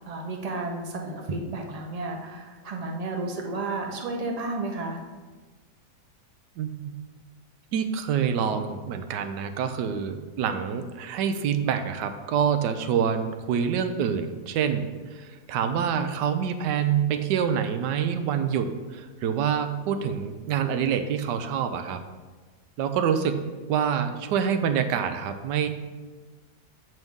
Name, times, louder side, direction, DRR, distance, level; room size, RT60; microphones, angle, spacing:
voice 1, 0.1-5.0, right 2 dB, 50° right, 2 dB, 0.4 m, -32 dB
voice 2, 6.6-6.9 7.7-14.9 15.1-22.0 22.8-23.4 23.7-25.7, right 7 dB, 85° right, 8 dB, 1.2 m, -26 dB
7.6 x 5.3 x 3.6 m, 1.4 s
omnidirectional pair, 1.8 m